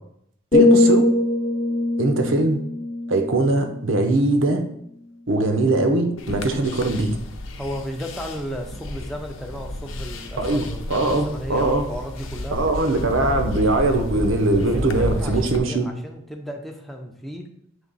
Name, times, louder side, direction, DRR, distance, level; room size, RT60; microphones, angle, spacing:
sound 1, 0.5-4.5 4.9-5.2, left 2 dB, 35° left, 0.9 m, -21 dB
voice 1, 0.5-1.1 2.0-2.6 3.1-4.6 5.3-7.2 10.4-11.8 12.5-15.9, right 2 dB, 75° right, 6 dB, 0.8 m, -21 dB
sound 2, 6.2-15.6, left 1 dB, 75° left, 0.7 m, -32 dB
voice 2, 7.6-12.6 14.6-17.5, equal, ahead, 2 dB, 0.5 m, -34 dB
7.1 x 3.4 x 3.9 m, 0.72 s
head